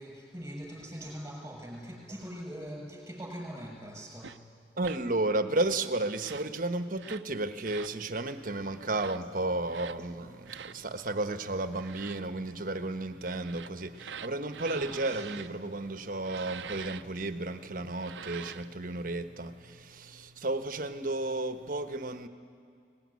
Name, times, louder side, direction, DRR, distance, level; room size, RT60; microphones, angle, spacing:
voice 1, 0.0-4.4 10.9-11.0 14.7-15.4, equal, 15° right, 0 dB, 6.1 m, -42 dB
sound 1, 4.2-4.4 4.8-5.0 6.1-6.5 7.0-7.3 7.6-8.0 8.8-9.2 9.7-10.0 10.5-10.8 11.7-12.2 13.3-15.5 16.2-17.0 17.9-18.7, right 7 dB, 80° right, 0.6 m, -44 dB
voice 2, 4.8-22.3, right 2 dB, 50° right, 10 dB, 1.2 m, -33 dB
23.0 x 19.5 x 9.7 m, 2.4 s
head